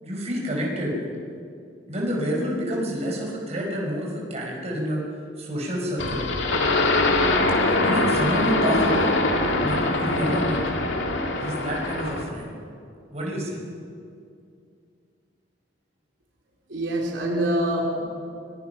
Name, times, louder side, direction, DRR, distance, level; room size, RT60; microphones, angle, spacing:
voice 1, 0.0-1.0 1.9-5.1 5.4-6.3 7.7-9.2 9.6-10.6 11.4-12.5 13.1-13.6, equal, 35° right, -2 dB, 5.1 m, -28 dB
sound 1, 6.0-12.3, left 2 dB, 85° left, 2.4 m, -23 dB
voice 2, 16.7-18.1, right 1 dB, 80° right, -2 dB, 3.8 m, -25 dB
24.5 x 21.5 x 5.8 m, 2.4 s
head